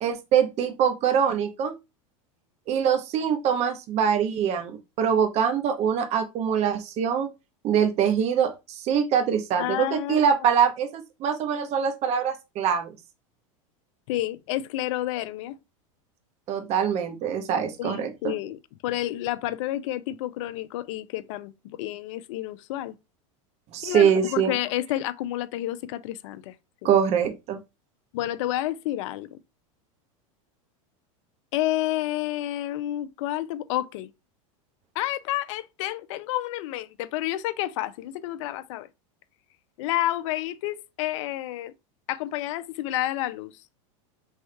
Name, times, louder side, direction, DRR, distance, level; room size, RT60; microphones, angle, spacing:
voice 1, 0.0-1.7 2.7-7.3 7.6-12.9 16.5-18.3 23.7-24.5 26.8-27.6, right 8 dB, 40° right, 0.9 m, -24 dB
voice 2, 9.6-10.5 14.1-15.6 17.8-23.0 23.8-26.5 26.8-26.9 28.1-29.4 31.5-34.1 34.9-38.9 39.8-41.7 42.1-43.5, left 14 dB, 65° left, 0.5 m, -30 dB
3.6 x 3.4 x 4.4 m
supercardioid pair, 125°, 17 cm